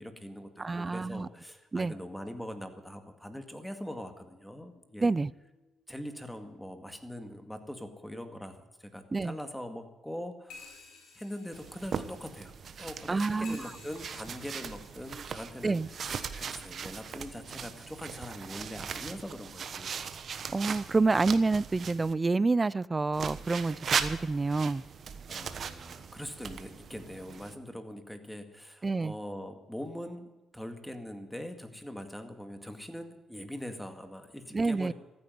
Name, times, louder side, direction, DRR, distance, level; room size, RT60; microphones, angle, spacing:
voice 1, 0.0-5.1 5.9-10.8 11.2-12.5 12.8-15.8 16.1-19.9 25.3-34.9, equal, 5° left, 2.0 m, -42 dB
voice 2, 0.6-1.3 1.7-1.9 5.0-5.3 9.1-9.3 13.1-13.7 15.6-15.9 20.5-24.8 28.8-29.1 34.5-34.9, right 3 dB, 25° right, 0.4 m, -28 dB
sound 1, 4.8-5.8 6.3-6.4 6.6-6.7 10.5-13.0 13.4-15.4 16.3-16.4, left 4 dB, 75° left, 4.9 m, -54 dB
sound 2, 11.5-22.1 23.1-27.6, right 6 dB, 55° right, 1.1 m, -39 dB
14.5 x 9.6 x 9.4 m
cardioid pair, 90°, 0 cm